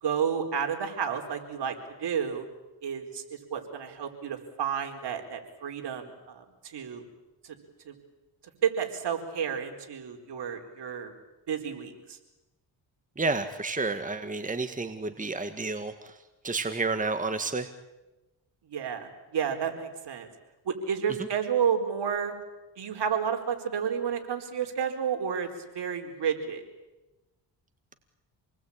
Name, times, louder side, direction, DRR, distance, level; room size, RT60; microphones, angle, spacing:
voice 1, 0.0-2.4 2.8-3.2 3.5-7.0 7.4-7.6 7.8-7.9 8.6-11.1 11.5-12.2 18.7-20.3 20.6-22.3 22.8-25.5 25.7-26.6, right 7 dB, 60° right, 4 dB, 4.6 m, -31 dB
voice 2, 13.2-16.2 16.4-17.7, right 3 dB, 15° right, 8 dB, 1.8 m, -30 dB
27.5 x 20.0 x 8.9 m, 1.0 s
cardioid pair, 75°, 45 cm